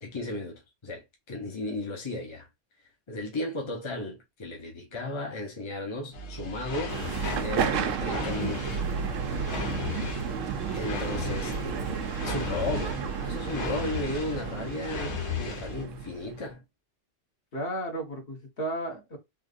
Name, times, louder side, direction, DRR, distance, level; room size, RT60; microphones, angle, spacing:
voice 1, 0.0-2.5 3.1-7.0 7.3-8.8 10.7-16.6, left 2 dB, 25° left, 0.9 m, -35 dB
sound 1, 6.1-15.8, left 4 dB, 65° left, 1.1 m, -37 dB
sound 2, 6.9-16.5, right 6 dB, 90° right, 1.0 m, -32 dB
voice 2, 17.5-19.2, right 1 dB, 50° left, 1.4 m, -33 dB
3.6 x 2.5 x 2.5 m
omnidirectional pair, 1.3 m